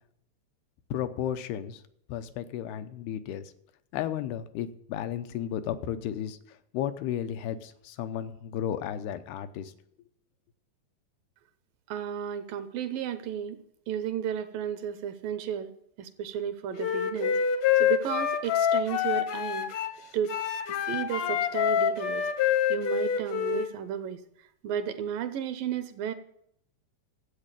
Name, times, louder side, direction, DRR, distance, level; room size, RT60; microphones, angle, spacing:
voice 1, 0.9-1.8 2.1-3.5 3.9-9.7, left 10 dB, 90° left, 9 dB, 2.8 m, -34 dB
voice 2, 11.9-13.6 13.9-15.7 16.0-17.4 17.8-19.7 20.1-20.3 20.9-24.2 24.6-26.1, right 9 dB, 75° right, 11 dB, 2.3 m, -33 dB
Wind instrument woodwind instrument, 16.8-20.0 20.3-23.7, left 8 dB, 70° left, 1.6 m, -26 dB
13.5 x 8.3 x 8.9 m, 0.73 s
omnidirectional pair, 4.5 m